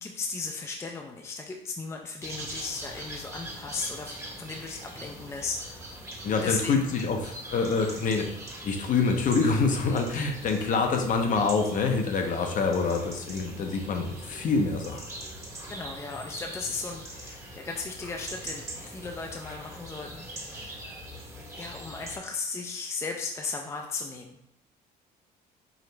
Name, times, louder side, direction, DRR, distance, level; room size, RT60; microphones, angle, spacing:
voice 1, 0.0-6.1 6.3-7.0 15.7-20.9 21.6-24.4, left 4 dB, 15° left, 2 dB, 0.4 m, -36 dB
sound 1, 2.2-22.2, right 1 dB, 15° right, 0.9 m, -42 dB
voice 2, 6.2-8.3 8.6-15.0, left 4 dB, 50° left, 3 dB, 0.7 m, -26 dB
4.8 x 2.5 x 3.2 m, 0.72 s
cardioid pair, 110°, 17 cm